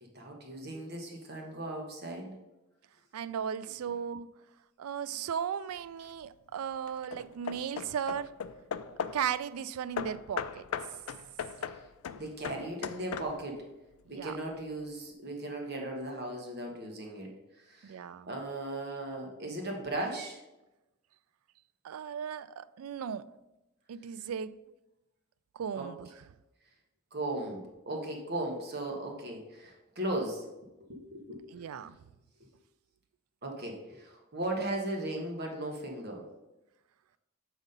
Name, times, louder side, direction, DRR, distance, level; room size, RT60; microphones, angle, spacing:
voice 1, 0.0-2.4 11.6-11.8 12.1-13.7 14.1-18.0 18.2-20.4 25.7-25.9 27.1-30.4 30.9-31.6 33.4-36.2, right 1 dB, 50° right, 1.2 m, -37 dB
voice 2, 3.1-4.3 4.8-8.3 9.0-10.7 14.1-14.3 17.8-18.3 21.8-23.3 23.9-24.5 25.6-26.1 31.5-32.0, right 8 dB, 90° right, 0.4 m, -36 dB
Hammer / Wood, 5.7-6.2 6.9-9.3 10.0-13.6, left 7 dB, 90° left, 0.4 m, -39 dB
7.1 x 4.1 x 5.2 m
head